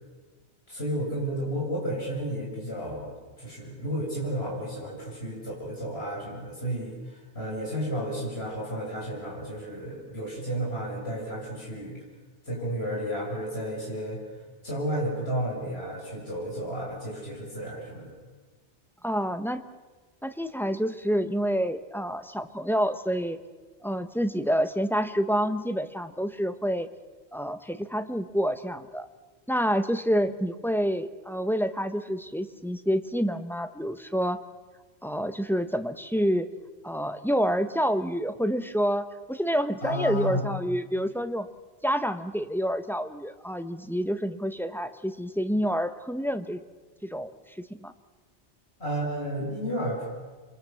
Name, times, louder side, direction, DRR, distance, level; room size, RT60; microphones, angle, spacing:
voice 1, 0.7-3.1 3.4-12.0 12.5-14.2 14.6-18.1 39.8-40.4 48.8-50.1, equal, 80° left, -3 dB, 7.1 m, -32 dB
voice 2, 19.0-19.6 20.2-23.4 23.8-26.9 27.3-29.1 29.5-34.4 35.0-36.5 36.8-41.5 41.8-46.6 47.0-47.9, equal, ahead, 10 dB, 0.9 m, -28 dB
29.0 x 23.0 x 7.0 m, 1.4 s
omnidirectional pair, 1.0 m